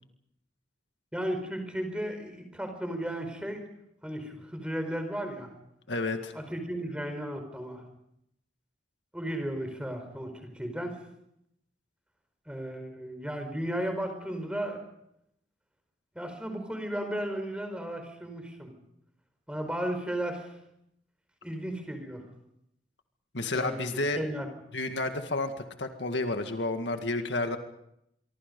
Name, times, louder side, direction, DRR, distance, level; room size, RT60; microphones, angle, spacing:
voice 1, 1.1-3.6 4.0-5.5 6.3-7.8 9.1-11.0 12.5-14.8 16.1-18.7 19.5-20.5 21.4-22.2 23.5-23.8 24.1-24.5, right 1 dB, 5° right, 6 dB, 4.8 m, -34 dB
voice 2, 5.9-6.3 23.3-24.2 24.7-25.5 25.8-27.6, left 2 dB, 75° left, 6 dB, 2.0 m, -30 dB
26.0 x 24.0 x 5.4 m, 0.78 s
head